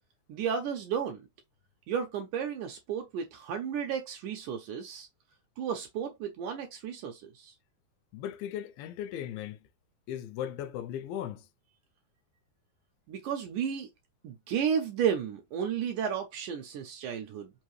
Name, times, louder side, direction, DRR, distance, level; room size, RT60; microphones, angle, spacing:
voice 1, 0.3-1.2 1.9-5.1 5.6-7.5 13.1-13.9 14.2-17.5, right 7 dB, 75° right, 1.9 m, -33 dB
voice 2, 8.1-9.6 10.1-11.5, left 10 dB, 85° left, 2.4 m, -37 dB
5.4 x 2.6 x 3.1 m
omnidirectional pair, 4.1 m